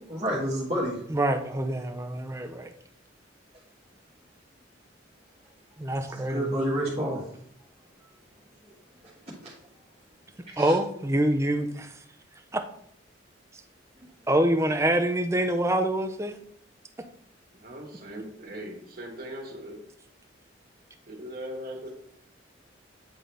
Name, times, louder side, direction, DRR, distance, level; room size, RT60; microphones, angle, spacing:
voice 1, 0.1-1.0 5.9-7.2 8.6-8.7 9.0-9.5 10.5-10.7, equal, 30° right, -9 dB, 1.6 m, -30 dB
voice 2, 1.1-2.7 5.8-6.5 10.6-11.9 14.3-16.4, right 1 dB, 15° right, 6 dB, 0.5 m, -25 dB
voice 3, 17.5-19.8 21.1-21.9, equal, 45° right, 0 dB, 1.6 m, -39 dB
9.6 x 3.8 x 3.4 m, 0.69 s
head